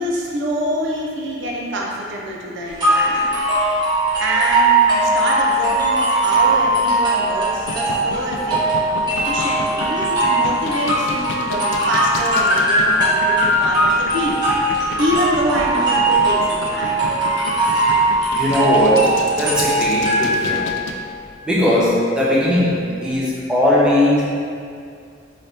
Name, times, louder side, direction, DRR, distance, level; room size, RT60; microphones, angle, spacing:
voice 1, 0.0-3.3 4.2-8.6 9.1-17.0, right 1 dB, 70° right, -3 dB, 0.5 m, -25 dB
sound 1, 2.8-20.7, right 2 dB, 25° right, 1.1 m, -19 dB
sound 2, 7.5-20.9, left 4 dB, 75° left, 0.4 m, -31 dB
voice 2, 18.3-20.7 21.4-24.2, left 1 dB, 5° right, -8 dB, 0.7 m, -18 dB
3.9 x 2.8 x 3.4 m, 2.3 s
head